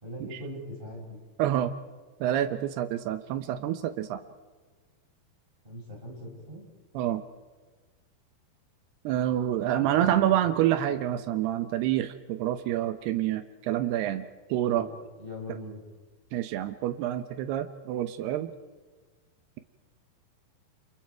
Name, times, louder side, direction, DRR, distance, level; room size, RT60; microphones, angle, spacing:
voice 1, 0.0-1.2 5.6-6.6 9.8-10.1 14.6-14.9 15.2-15.8, left 1 dB, 10° right, -1 dB, 5.6 m, -41 dB
voice 2, 1.4-1.7 2.2-4.2 6.9-7.2 9.0-14.2 14.5-14.9 16.3-18.5, right 12 dB, 75° right, 10 dB, 2.7 m, -27 dB
29.5 x 28.0 x 4.7 m, 1.3 s
omnidirectional pair, 5.0 m